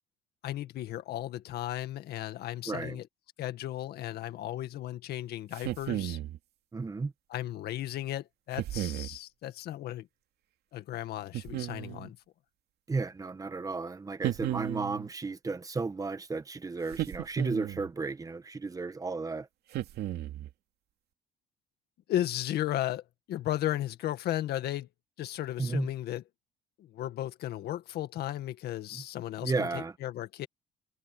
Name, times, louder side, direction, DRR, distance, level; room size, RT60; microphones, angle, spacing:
voice 1, 0.4-3.1 3.4-6.2 7.3-10.1 10.7-12.2 22.1-23.0 23.3-24.9 25.2-26.2 26.8-30.5, left 13 dB, 70° left, 1.9 m, -35 dB
voice 2, 2.7-3.0 6.7-7.1 12.9-19.5 25.6-25.9 28.9-29.0 29.4-29.9, right 4 dB, 20° right, 1.3 m, -33 dB
sound 1, 5.5-6.4 8.6-9.2 11.3-12.1 14.2-15.1 16.9-17.9 19.7-20.5, right 14 dB, 75° right, 2.7 m, -34 dB
cardioid pair, 110°, 17 cm